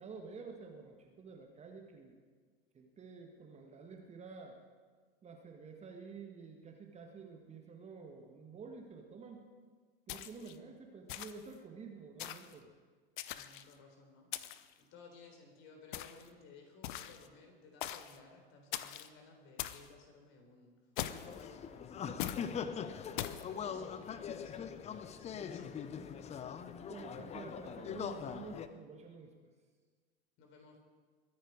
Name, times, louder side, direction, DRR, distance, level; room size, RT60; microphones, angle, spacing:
voice 1, 0.0-2.2 2.7-4.6 5.2-9.5 10.1-12.7 23.6-23.9 26.9-29.3, right 4 dB, 20° right, 2 dB, 1.7 m, -50 dB
sound 1, 10.1-10.6 11.1-11.5 12.2-12.5 13.2-13.7 14.3-14.7 15.9-16.3 16.8-17.3 17.8-18.2 18.7-19.1 19.6-19.9 21.0-21.4 22.2-22.5 23.2-23.5, left 13 dB, 55° left, 0.8 m, -41 dB
voice 2, 13.3-14.3 14.8-20.7 21.0-26.6 30.4-30.8, left 4 dB, 40° left, 3 dB, 3.9 m, -58 dB
sound 2, 21.0-28.7, left 7 dB, 20° left, 0.8 m, -42 dB
22.5 x 10.5 x 4.8 m, 1.5 s
figure-of-eight pair, 90°, 29 cm